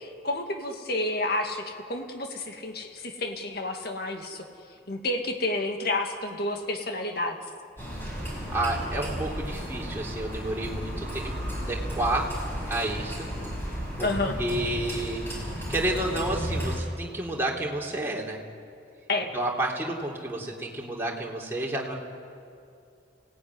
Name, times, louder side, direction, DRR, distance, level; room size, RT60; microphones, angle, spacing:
voice 1, 0.0-4.4 4.9-7.4 14.0-14.4 19.1-19.3, left 2 dB, 55° left, 4 dB, 2.2 m, -30 dB
sound 1, 7.8-16.8, equal, 10° left, 5.5 m, -33 dB
voice 2, 8.1-11.3 11.6-12.4 12.7-13.3 14.0-14.1 14.4-15.4 15.7-18.4 19.3-21.9, right 1 dB, 15° right, -3 dB, 3.2 m, -30 dB
29.0 x 18.0 x 9.7 m, 2.5 s
head